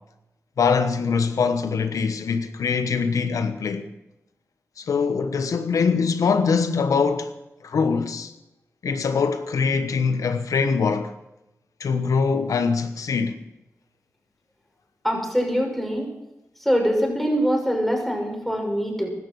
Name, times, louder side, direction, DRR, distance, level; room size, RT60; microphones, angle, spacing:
voice 1, 0.6-3.9 4.8-7.4 7.6-8.3 8.8-11.1 11.8-13.4, left 5 dB, 90° left, 1.1 m, -23 dB
voice 2, 15.0-16.1 16.6-19.1, equal, 5° left, 6.3 m, -23 dB
16.0 x 12.5 x 6.2 m
cardioid pair, 40°, 6 cm